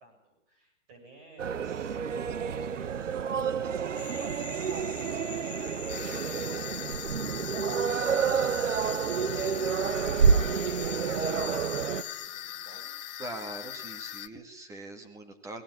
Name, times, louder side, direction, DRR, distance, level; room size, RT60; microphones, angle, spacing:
voice 1, 0.0-13.0, right 2 dB, 25° right, 3 dB, 7.3 m, -55 dB
Blue Mosque Istanbul with Walla, 1.4-12.0, right 6 dB, 90° right, 1.3 m, -29 dB
Frog, 3.9-12.3, left 9 dB, 15° left, 1.6 m, -44 dB
sound 1, 5.9-14.3, left 13 dB, 35° left, 1.2 m, -41 dB
voice 2, 13.2-15.6, right 2 dB, 10° right, 7 dB, 2.0 m, -42 dB
20.0 x 17.5 x 9.8 m, 0.82 s
hypercardioid pair, 160°, 36 cm